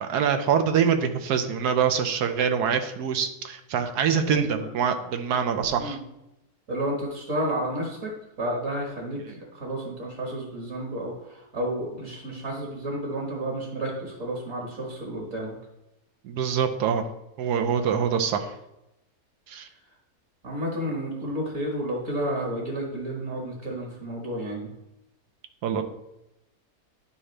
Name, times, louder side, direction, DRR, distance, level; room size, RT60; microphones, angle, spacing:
voice 1, 0.0-6.0 16.2-17.0 17.4-18.5 19.5-19.7 25.6-25.8, right 7 dB, 85° right, 8 dB, 1.3 m, -25 dB
voice 2, 4.3-4.7 5.8-6.0 6.7-8.1 8.4-15.6 20.4-24.7, right 1 dB, 55° right, -2 dB, 1.8 m, -31 dB
9.8 x 4.9 x 3.3 m, 0.90 s
omnidirectional pair, 1.7 m